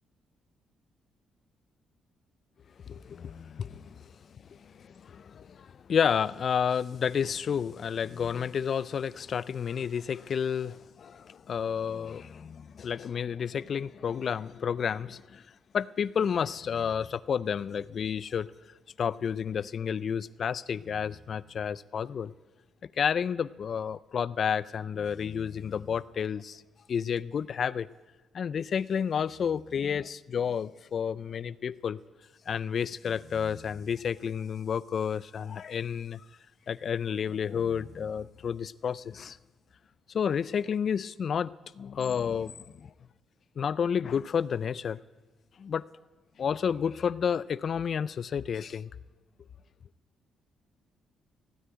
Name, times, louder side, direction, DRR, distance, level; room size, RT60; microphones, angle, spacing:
voice 1, 2.9-4.1 4.5-15.5 15.7-18.5 19.0-22.3 23.0-26.6 26.9-27.9 28.3-32.0 32.5-36.2 36.7-39.4 40.1-42.9 43.6-45.0 45.6-45.9 46.4-48.9, left 7 dB, 55° left, 0.5 m, -31 dB
15.5 x 9.7 x 9.4 m
cardioid pair, 90°, 0 cm